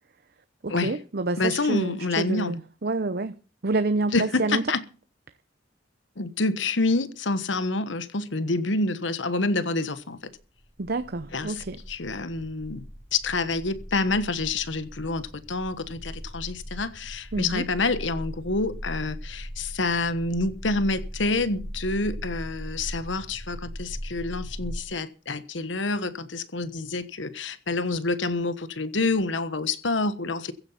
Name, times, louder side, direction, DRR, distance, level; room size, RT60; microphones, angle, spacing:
voice 1, 0.6-4.6 10.8-11.8 17.3-17.7, right 3 dB, 55° right, 0.8 m, -28 dB
voice 2, 1.4-2.5 4.1-4.8 6.2-10.3 11.3-12.8 13.1-30.5, left 3 dB, 75° left, 1.3 m, -27 dB
sound 1, 10.4-24.8, equal, 5° left, 2.5 m, -39 dB
15.5 x 9.7 x 5.8 m
head